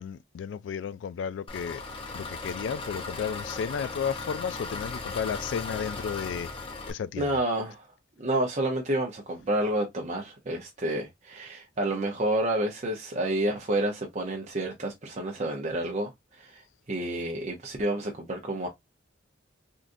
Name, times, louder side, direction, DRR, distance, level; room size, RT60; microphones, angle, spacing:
voice 1, 0.0-1.8 2.1-6.5 6.9-7.3, left 7 dB, 70° left, 0.3 m, -33 dB
Engine, 1.5-6.9, left 3 dB, 30° left, 0.8 m, -37 dB
voice 2, 7.2-7.9 8.2-16.1 16.4-18.7, right 1 dB, 40° right, 0.6 m, -29 dB
3.6 x 2.5 x 2.5 m
head